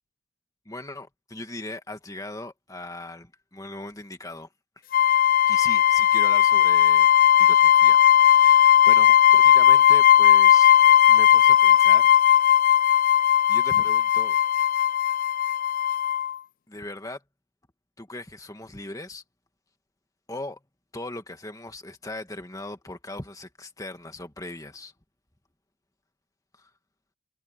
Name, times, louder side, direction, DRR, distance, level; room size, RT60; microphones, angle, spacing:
voice 1, 0.7-4.5 5.5-7.1 7.4-10.7 11.1-12.1 13.5-14.4 16.7-17.2 18.0-19.2 20.3-20.6 20.9-24.9, left 2 dB, 15° left, 2.0 m, -39 dB
sound 1, 4.9-16.4, left 10 dB, 45° left, 0.3 m, -17 dB
head